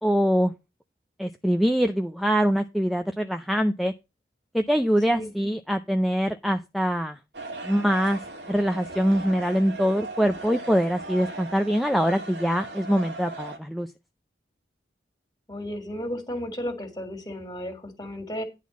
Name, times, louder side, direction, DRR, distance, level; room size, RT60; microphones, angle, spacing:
voice 1, 0.0-0.5 1.2-3.9 4.5-7.2 7.6-8.2 8.5-13.9, equal, ahead, 5 dB, 0.4 m, -24 dB
sound 1, 7.3-13.6, right 2 dB, 80° right, 2.0 m, -38 dB
voice 2, 15.5-18.4, equal, 20° left, 6 dB, 2.2 m, -34 dB
10.5 x 4.1 x 7.0 m, 0.26 s
head